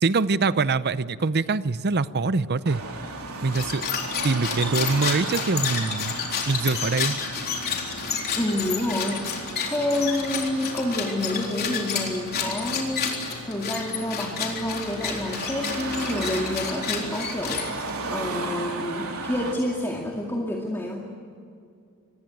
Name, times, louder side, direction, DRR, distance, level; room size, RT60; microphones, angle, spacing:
voice 1, 0.0-2.8 3.4-3.9 4.2-6.2 6.5-7.2, right 4 dB, 45° right, 15 dB, 0.7 m, -24 dB
Car passing by / Traffic noise roadway noise / Engine, 2.7-19.5, right 3 dB, 75° right, 3.8 m, -36 dB
sound 1, 3.5-18.1, left 6 dB, 45° left, 3.9 m, -30 dB
voice 2, 8.4-9.2 9.7-21.0, left 1 dB, 10° left, -1 dB, 2.2 m, -28 dB
25.5 x 20.0 x 9.1 m, 2.3 s
head